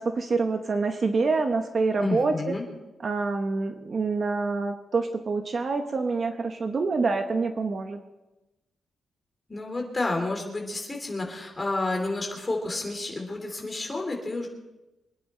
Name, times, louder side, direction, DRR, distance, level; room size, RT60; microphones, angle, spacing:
voice 1, 0.0-2.6 3.0-8.0, right 4 dB, 35° right, 6 dB, 0.9 m, -26 dB
voice 2, 2.0-2.6 9.5-14.5, left 2 dB, 15° left, 1 dB, 2.9 m, -30 dB
24.5 x 10.0 x 4.3 m, 1.0 s
wide cardioid pair, 175°, 0 cm